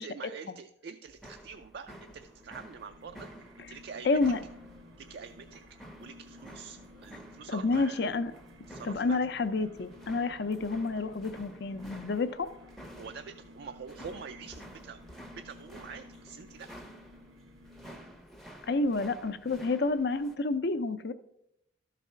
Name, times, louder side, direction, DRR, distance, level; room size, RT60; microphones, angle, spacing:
voice 1, 0.0-3.3 3.6-4.3 5.0-5.6 6.0-8.0 8.7-9.2 13.0-15.0 15.3-16.7, right 6 dB, 55° right, 7 dB, 0.3 m, -45 dB
sound 1, 1.1-20.4, equal, ahead, 0.6 m, -51 dB
sound 2, 1.8-18.4, left 1 dB, 85° right, 1.0 m, -54 dB
voice 2, 4.0-4.4 7.5-8.3 8.8-12.5 18.7-21.1, left 3 dB, 55° left, 12 dB, 0.5 m, -29 dB
12.0 x 4.1 x 5.6 m, 0.79 s
head